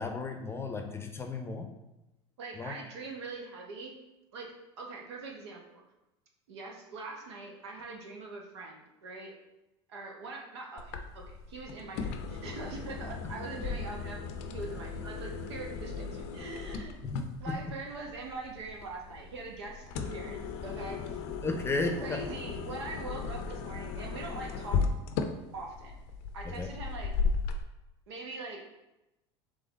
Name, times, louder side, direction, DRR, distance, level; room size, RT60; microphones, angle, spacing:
voice 1, 0.0-1.7 2.5-2.7 17.0-17.6 21.4-22.2 26.4-26.7, left 3 dB, 20° left, 5 dB, 0.6 m, -34 dB
voice 2, 2.4-4.0 4.3-5.8 6.5-9.3 9.9-17.0 17.4-21.2 22.0-24.9 25.5-25.9 26.3-27.1 28.1-28.6, right 3 dB, 80° right, 0 dB, 0.9 m, -42 dB
sound 1, 10.8-27.6, left 5 dB, 65° left, 0.5 m, -36 dB
3.8 x 3.3 x 3.9 m, 0.95 s
hypercardioid pair, 85°, 14 cm